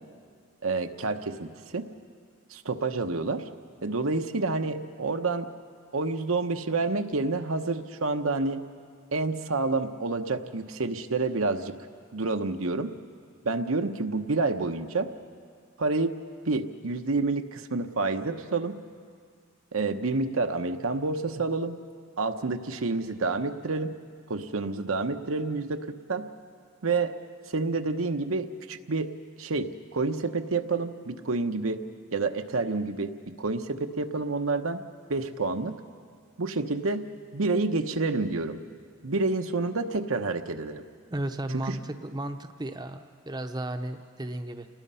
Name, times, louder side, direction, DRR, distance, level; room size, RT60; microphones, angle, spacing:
voice 1, 0.6-1.9 2.5-3.4 3.8-5.5 5.9-8.6 9.1-11.7 12.1-12.9 13.4-15.1 15.8-16.1 16.5-18.8 19.7-21.7 22.2-23.9 24.3-26.3 26.8-27.1 27.5-29.1 29.4-31.8 32.1-33.1 33.4-34.8 35.1-35.7 36.4-37.0 37.3-38.6 39.0-40.8 41.5-41.8, right 3 dB, 85° right, 7 dB, 1.0 m, -28 dB
voice 2, 41.1-44.7, right 1 dB, 20° right, 7 dB, 0.7 m, -34 dB
29.0 x 19.5 x 5.6 m, 2.1 s
head